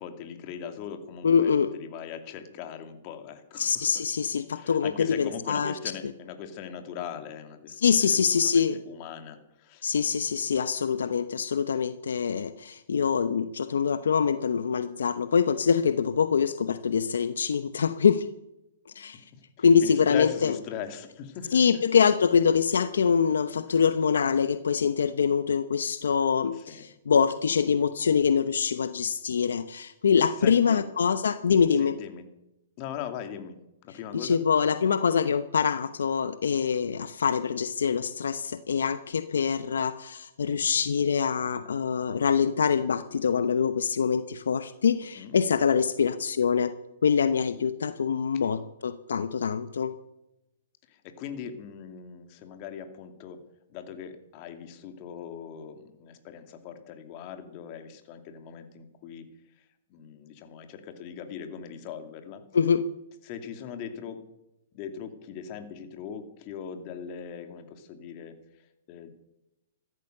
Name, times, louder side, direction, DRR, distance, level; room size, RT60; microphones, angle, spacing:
voice 1, 0.0-4.0 4.5-9.9 19.0-21.6 23.7-23.8 26.5-26.8 30.4-30.8 31.7-32.3 32.8-34.4 45.1-45.4 48.4-48.5 50.9-53.4 53.7-59.3 59.6-59.7 59.9-62.4 63.2-64.2 64.7-69.1, left 8 dB, 40° left, 6 dB, 2.6 m, -40 dB
voice 2, 1.2-1.7 3.6-5.7 7.8-8.8 9.8-18.3 19.0-19.2 19.6-20.5 21.5-32.0 34.1-46.7 47.0-49.9 62.5-62.8, left 6 dB, 85° left, 12 dB, 0.9 m, -24 dB
15.0 x 13.5 x 6.7 m, 0.90 s
hypercardioid pair, 135°, 0 cm